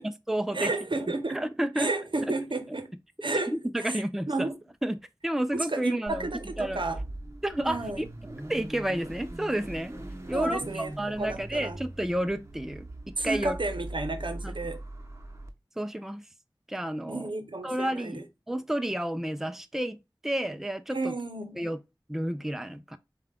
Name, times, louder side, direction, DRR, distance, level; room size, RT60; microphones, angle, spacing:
voice 1, 0.0-0.7 1.3-1.9 2.3-2.4 3.5-4.5 4.8-6.3 6.6-6.8 7.4-8.1 8.5-10.0 10.3-13.5 14.4-14.5 15.8-16.3 16.7-17.3 17.6-21.1 21.6-21.8 22.1-23.0, right 1 dB, 5° right, 0.5 m, -31 dB
voice 2, 0.5-1.4 1.8-2.9 3.2-3.5 3.8-4.5 5.5-7.0 7.7-8.1 10.3-10.9 11.2-11.8 13.2-14.8 17.1-18.2 20.9-21.6, right 2 dB, 75° right, 0.8 m, -32 dB
Car / Idling / Accelerating revving vroom, 6.1-15.5, right 1 dB, 35° right, 0.8 m, -41 dB
5.5 x 2.3 x 3.6 m
wide cardioid pair, 40°, 8 cm